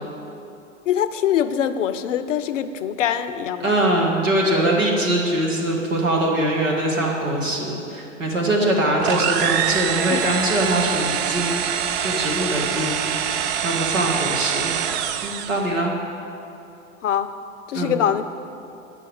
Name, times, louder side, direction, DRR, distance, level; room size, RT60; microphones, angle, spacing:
voice 1, 0.9-3.7 8.6-8.7 10.1-10.3 17.0-17.3 17.7-18.3, left 9 dB, 70° left, 12 dB, 0.5 m, -23 dB
voice 2, 3.6-11.6 12.0-13.1 13.6-14.7 15.2-15.9 17.7-17.9, right 1 dB, 75° right, -1 dB, 1.9 m, -22 dB
sound 1, 9.0-15.7, right 9 dB, 35° right, 0.5 m, -24 dB
9.4 x 5.6 x 8.1 m, 2.8 s
figure-of-eight pair, 85°, 39 cm